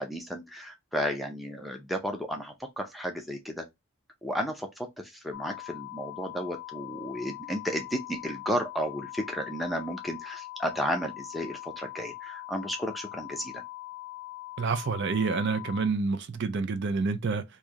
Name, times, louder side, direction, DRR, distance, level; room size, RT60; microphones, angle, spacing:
voice 1, 0.0-3.6 4.2-13.6, equal, ahead, 0.5 m, -33 dB
sound 1, 5.3-15.9, left 19 dB, 65° left, 0.5 m, -42 dB
voice 2, 14.6-17.4, right 4 dB, 50° right, 0.4 m, -28 dB
3.1 x 2.7 x 3.6 m
head